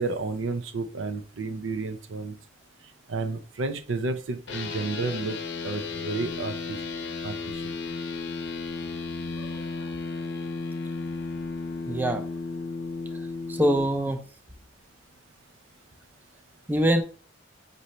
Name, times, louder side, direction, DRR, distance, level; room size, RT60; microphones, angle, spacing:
voice 1, 0.0-2.3 3.1-5.4 5.6-6.8 7.2-7.6, right 3 dB, 90° right, 7 dB, 0.6 m, -31 dB
sound 1, 4.5-13.9, left 4 dB, 65° left, 0.7 m, -34 dB
voice 2, 11.9-12.2 13.1-13.2 13.5-14.2 16.7-17.0, equal, 10° right, 6 dB, 0.4 m, -24 dB
5.3 x 2.7 x 3.0 m, 0.38 s
head